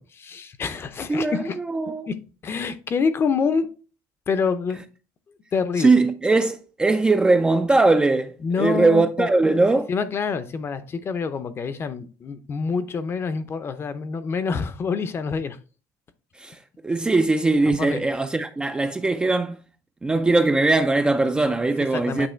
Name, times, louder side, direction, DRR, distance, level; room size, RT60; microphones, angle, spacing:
voice 1, 0.0-1.6 2.1-2.2 2.4-3.7 4.3-4.9 5.5-5.9 8.4-9.3 9.9-15.6 17.7-18.1 21.9-22.3, left 5 dB, 30° left, 0.6 m, -26 dB
voice 2, 1.1-2.1 5.8-9.9 16.4-16.6 16.8-19.6 20.0-22.3, right 3 dB, 10° right, 0.4 m, -20 dB
8.7 x 2.9 x 4.4 m
cardioid pair, 145°, 8 cm